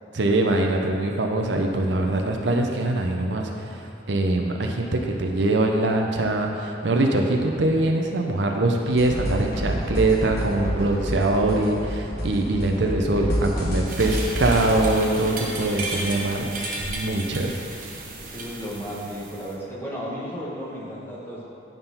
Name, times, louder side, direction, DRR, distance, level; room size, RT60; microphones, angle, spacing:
voice 1, 0.1-17.6, right 2 dB, 70° right, 2 dB, 0.6 m, -23 dB
sound 1, 8.9-14.9, equal, 55° left, 1.4 m, -28 dB
sound 2, 13.9-19.5, right 2 dB, 45° right, 1.0 m, -34 dB
voice 2, 18.2-21.4, equal, 10° left, -6 dB, 1.3 m, -35 dB
9.0 x 3.8 x 5.5 m, 2.9 s
head